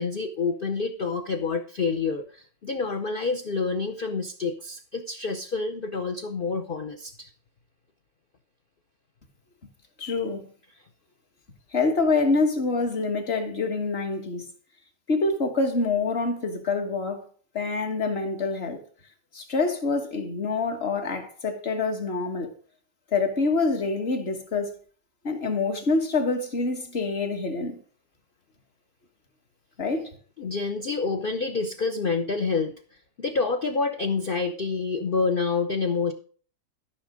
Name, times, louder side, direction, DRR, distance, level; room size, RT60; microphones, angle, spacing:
voice 1, 0.0-7.3 30.4-32.7 33.2-36.1, left 4 dB, 55° left, 0.6 m, -28 dB
voice 2, 10.0-10.4 11.7-14.4 15.1-17.2 17.5-18.8 19.3-22.5 23.1-24.7 25.2-27.8 29.8-30.1, left 3 dB, 40° left, 1.5 m, -26 dB
13.0 x 5.9 x 5.0 m
omnidirectional pair, 1.9 m